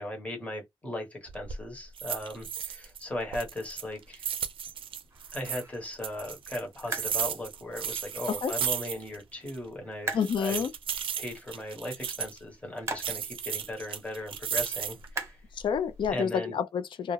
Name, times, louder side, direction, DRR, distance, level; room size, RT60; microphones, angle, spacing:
voice 1, 0.0-4.3 5.3-10.6 11.2-15.4 16.1-16.6, left 1 dB, 15° left, 0.9 m, -37 dB
sound 1, 1.3-1.6 2.0-3.0 3.3-5.6 6.0-9.2 9.5-9.6 10.1-12.4 13.0-15.1 15.6-16.1, right 8 dB, 80° right, 0.4 m, -34 dB
sound 2, 3.0-16.2, right 3 dB, 35° right, 0.7 m, -45 dB
voice 2, 10.1-10.7 15.5-17.1, left 7 dB, 65° left, 0.4 m, -29 dB
2.3 x 2.0 x 3.0 m
wide cardioid pair, 125°, 9 cm